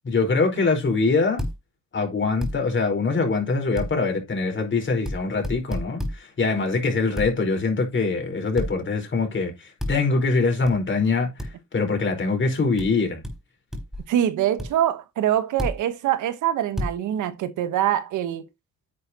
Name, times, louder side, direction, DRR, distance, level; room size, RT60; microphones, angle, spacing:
voice 1, 0.0-1.4 1.9-13.2, left 4 dB, 40° left, 4.6 m, -23 dB
sound 1, 1.4-1.6 2.4-2.6 3.8-3.9 5.1-5.2 5.4-6.2 7.2-7.3 8.6-8.7 9.8-10.0 10.7-10.8 11.4-11.5 12.8-12.9 13.2-13.4 13.7-14.0 14.6-14.7 15.6-15.8 16.8-16.9, left 1 dB, ahead, 4.3 m, -29 dB
voice 2, 14.1-18.5, right 11 dB, 80° right, 1.2 m, -24 dB
10.0 x 8.1 x 2.9 m
cardioid pair, 90°, 30 cm